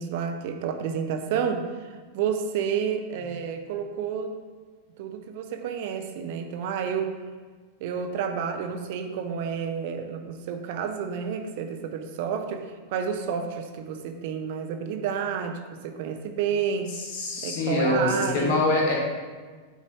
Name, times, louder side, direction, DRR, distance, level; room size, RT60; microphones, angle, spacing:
voice 1, 0.0-1.6 2.1-4.4 5.0-7.1 7.8-16.9 17.4-18.6, right 7 dB, 50° right, 5 dB, 0.5 m, -30 dB
voice 2, 17.1-18.9, left 2 dB, 45° left, -2 dB, 1.6 m, -24 dB
9.2 x 4.1 x 3.1 m, 1.4 s
figure-of-eight pair, 90°, 0 cm